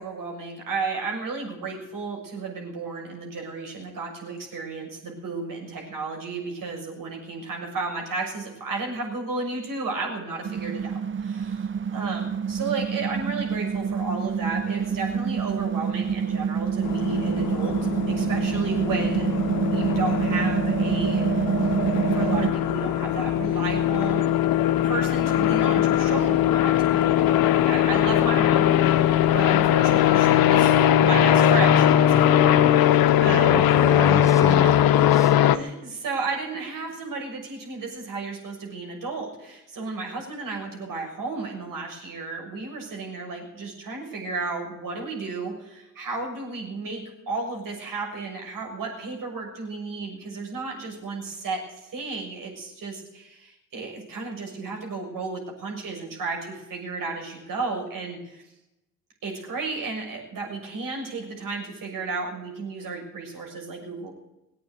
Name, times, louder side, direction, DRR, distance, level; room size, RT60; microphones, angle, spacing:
voice 1, 0.0-17.8 18.1-19.3 19.7-21.6 22.1-24.3 24.8-30.7 31.0-33.6 35.5-58.4 59.2-64.1, right 3 dB, 55° right, 0 dB, 6.6 m, -33 dB
sound 1, 10.4-22.5, right 6 dB, 30° right, 0.9 m, -26 dB
sound 2, 16.8-35.6, left 11 dB, 60° left, 1.0 m, -20 dB
voice 2, 33.2-35.3, left 1 dB, 10° left, 9 dB, 1.1 m, -30 dB
20.0 x 8.7 x 8.3 m, 0.94 s
hypercardioid pair, 50°, 39 cm